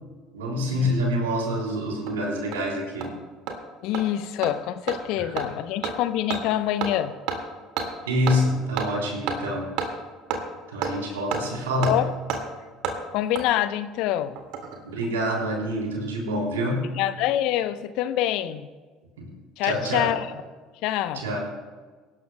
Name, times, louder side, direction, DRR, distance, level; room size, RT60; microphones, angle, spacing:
voice 1, 0.3-3.1 5.1-5.4 7.8-9.7 10.7-12.0 14.8-16.9 19.2-19.3 19.6-20.1 21.1-21.4, equal, 80° right, -1 dB, 3.3 m, -26 dB
Hammer, 1.6-1.7 2.1-2.2 2.5-2.6 3.0-3.1 3.5-3.6 3.9-4.0 4.4-4.5 4.9-5.0 5.4-5.5 5.8-5.9 6.3-6.4 6.8-6.9 7.3-7.4 7.8-7.9 8.3-8.4 8.8-8.9 9.3-9.4 9.8-9.9 10.3-10.4 10.8-10.9 11.3-11.4 11.8-11.9 12.3-12.4 12.8-13.0 13.3-13.4 14.4-14.8 15.0-15.1, right 6 dB, 65° right, 2.0 m, -28 dB
voice 2, 3.8-7.1 11.9-12.0 13.1-14.4 17.0-18.7 19.6-20.2 20.8-21.2, left 12 dB, 65° left, 12 dB, 0.7 m, -26 dB
23.0 x 12.0 x 2.2 m, 1.4 s
hypercardioid pair, 65°, 0 cm